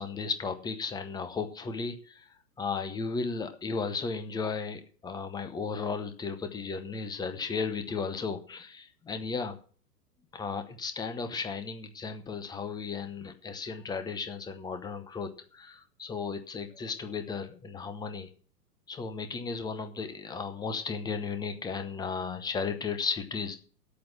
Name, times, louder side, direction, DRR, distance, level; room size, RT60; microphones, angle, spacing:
voice 1, 0.0-2.2 2.6-9.6 10.3-18.3 18.9-23.6, left 5 dB, 10° left, 8 dB, 0.9 m, -35 dB
8.6 x 7.7 x 8.7 m, 0.41 s
figure-of-eight pair, 110°, 49 cm